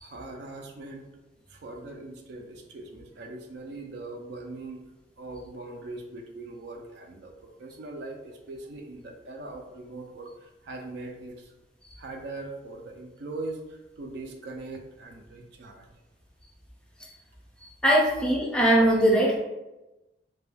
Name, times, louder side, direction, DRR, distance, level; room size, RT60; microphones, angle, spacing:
voice 1, 0.0-1.1 1.5-4.8 5.2-10.3 10.6-11.5 12.0-15.9, right 2 dB, 70° right, 2 dB, 0.4 m, -40 dB
voice 2, 17.8-19.4, right 1 dB, 5° left, -3 dB, 0.4 m, -20 dB
2.2 x 2.1 x 3.1 m, 1.0 s
head